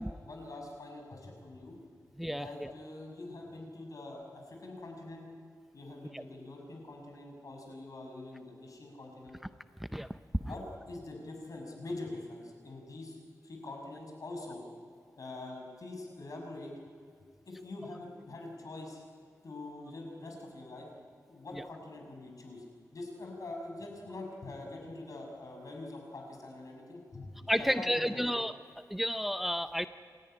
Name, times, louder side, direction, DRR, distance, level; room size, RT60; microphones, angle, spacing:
voice 1, 0.0-1.8 2.3-5.3 5.7-9.4 10.4-14.6 15.2-16.8 17.5-19.0 19.4-20.9 21.3-22.6 22.9-28.3, left 2 dB, 60° left, 1 dB, 6.1 m, -44 dB
voice 2, 27.5-28.5 28.9-29.9, equal, 5° right, 10 dB, 0.6 m, -31 dB
28.5 x 14.5 x 10.0 m, 2.3 s
wide cardioid pair, 110°, 7 cm